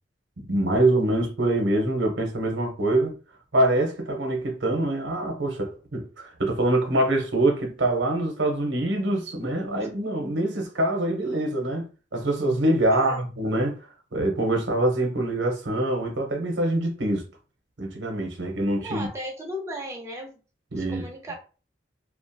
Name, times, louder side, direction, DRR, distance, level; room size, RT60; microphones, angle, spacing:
voice 1, 0.4-3.2 3.5-11.8 12.1-13.8 14.1-17.2 17.8-19.1 20.7-21.0, right 1 dB, 75° right, 0.8 m, -24 dB
voice 2, 18.8-20.4 20.8-21.3, equal, 15° right, 0.6 m, -35 dB
2.4 x 2.1 x 2.6 m
head